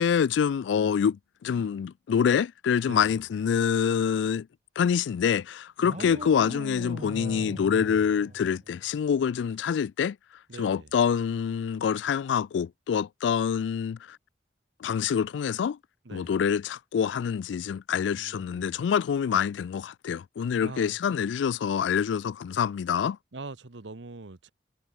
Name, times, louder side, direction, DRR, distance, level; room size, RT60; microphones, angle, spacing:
voice 1, 0.0-4.5 4.8-10.2 10.6-14.2 14.8-15.8 16.1-23.2, left 7 dB, 80° left, 0.3 m, -26 dB
voice 2, 2.8-3.3 6.0-6.3 10.5-10.9 16.0-16.4 18.2-18.8 20.6-21.0 23.3-24.5, right 3 dB, 80° right, 1.1 m, -43 dB
sound 1, 5.8-8.9, right 1 dB, 40° right, 2.3 m, -40 dB
head